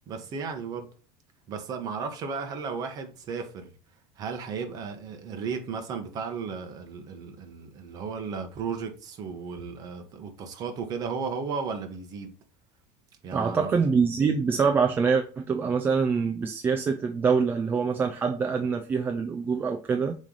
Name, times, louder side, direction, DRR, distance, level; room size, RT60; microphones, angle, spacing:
voice 1, 0.1-0.9 1.5-3.7 4.2-12.3 13.2-13.7, right 5 dB, 35° right, 1.2 m, -34 dB
voice 2, 13.3-20.1, right 5 dB, 15° right, 0.4 m, -25 dB
7.4 x 3.2 x 3.9 m
cardioid pair, 175°, 11 cm